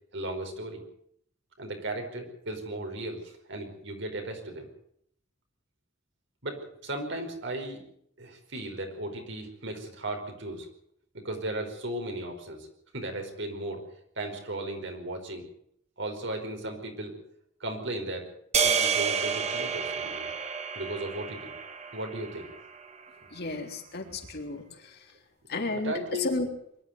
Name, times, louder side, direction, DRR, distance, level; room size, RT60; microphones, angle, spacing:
voice 1, 0.1-0.8 1.6-4.7 6.4-7.8 8.2-10.7 11.1-12.7 12.9-13.8 14.1-15.4 16.0-17.2 17.6-18.3 18.6-20.3 20.7-21.5 21.9-22.5 25.5-26.3, right 1 dB, 65° right, 4 dB, 5.0 m, -36 dB
sound 1, 18.5-22.9, right 6 dB, 35° right, 2.1 m, -30 dB
voice 2, 23.3-25.1 25.5-26.5, left 2 dB, 55° left, 3 dB, 3.7 m, -33 dB
23.0 x 12.5 x 9.4 m, 0.70 s
head